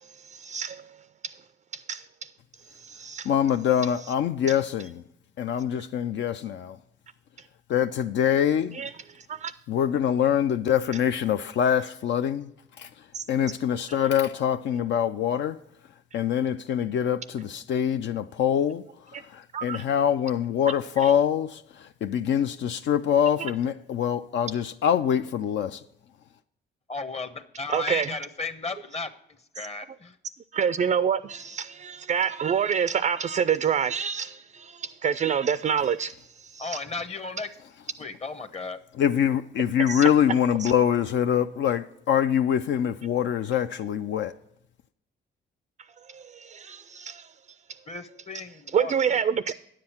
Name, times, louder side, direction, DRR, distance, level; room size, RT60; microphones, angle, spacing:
voice 1, 0.0-1.3 1.7-2.1 2.7-3.3 4.0-4.1 4.5-4.6 7.4-7.5 8.7-9.5 13.1-13.2 13.9-14.1 19.1-19.2 19.5-19.8 21.0-21.1 23.4-23.5 27.7-28.1 30.5-36.8 39.9-40.1 40.6-40.7 46.0-47.4 48.7-49.5, right 7 dB, 40° right, 0.4 m, -28 dB
voice 2, 3.3-5.0 5.4-6.8 7.7-8.8 9.7-12.5 12.8-12.9 13.3-15.6 16.1-18.8 19.3-25.8 39.0-44.3, left 9 dB, 65° left, 0.5 m, -24 dB
voice 3, 26.9-29.1 29.5-30.2 36.6-37.5 38.0-38.8 47.9-49.2, left 4 dB, 30° left, 0.9 m, -35 dB
9.8 x 7.6 x 4.3 m
cardioid pair, 90°, 20 cm